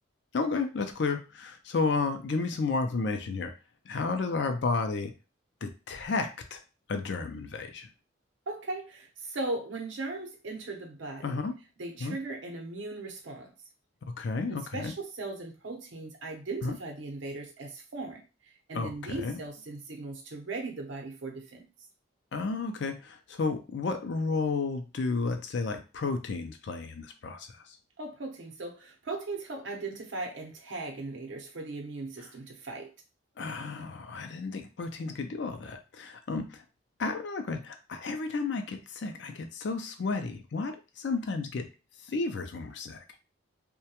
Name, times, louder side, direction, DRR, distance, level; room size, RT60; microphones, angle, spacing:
voice 1, 0.3-3.5 3.9-5.1 5.6-6.6 6.9-7.9 11.2-11.6 12.0-12.2 14.1-14.9 16.6-16.8 18.7-19.3 22.3-27.8 33.4-36.6 37.0-41.7 42.0-43.0, left 4 dB, 60° left, 7 dB, 0.4 m, -32 dB
voice 2, 8.5-11.4 11.8-13.5 14.5-21.7 28.0-32.9, right 2 dB, 70° right, 2 dB, 0.7 m, -38 dB
2.2 x 2.1 x 2.8 m, 0.31 s
head